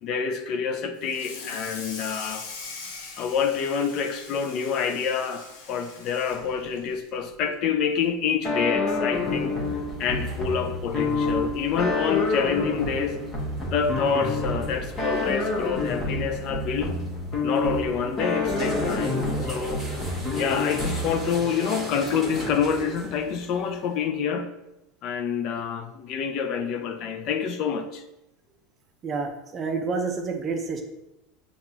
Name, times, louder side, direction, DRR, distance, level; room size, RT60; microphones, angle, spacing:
voice 1, 0.0-2.5 3.2-9.6 10.0-13.2 13.7-17.0 17.4-19.9 20.1-24.5 25.0-28.0, left 6 dB, 45° left, 7 dB, 0.3 m, -27 dB
Water tap faucet / Sink (filling or washing), 1.0-7.6 8.0-8.3 8.6-8.7 9.1-9.2 10.3-10.4 10.9-11.1, left 4 dB, 80° left, 0.8 m, -41 dB
sound 1, 8.4-21.3, left 3 dB, 25° left, 0.9 m, -28 dB
sound 2, 9.1-24.1, right 1 dB, ahead, 1.1 m, -38 dB
voice 2, 29.0-30.8, right 4 dB, 25° right, 4 dB, 0.5 m, -29 dB
5.9 x 2.3 x 2.8 m, 0.92 s
supercardioid pair, 145°, 0 cm